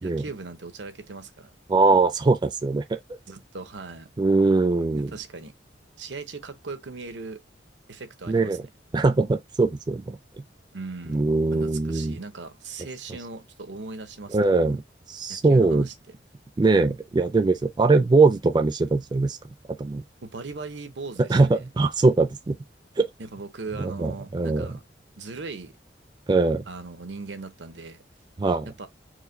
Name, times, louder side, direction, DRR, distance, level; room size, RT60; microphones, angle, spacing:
voice 1, 0.0-1.5 3.3-4.1 4.9-5.5 6.0-7.4 7.9-8.6 10.7-11.2 11.5-14.8 15.3-15.9 20.2-21.6 23.2-24.8 25.1-25.7 26.7-28.0 28.6-28.9, right 3 dB, 90° right, 0.8 m, -39 dB
voice 2, 1.7-3.0 4.2-5.1 8.3-8.6 8.9-10.2 11.1-12.2 14.3-14.8 15.1-15.9 16.6-19.4 19.8-20.0 21.2-22.6 23.0-23.1 23.8-24.8 26.3-26.6 28.4-28.7, right 3 dB, 25° right, 0.3 m, -21 dB
4.8 x 2.1 x 3.8 m
head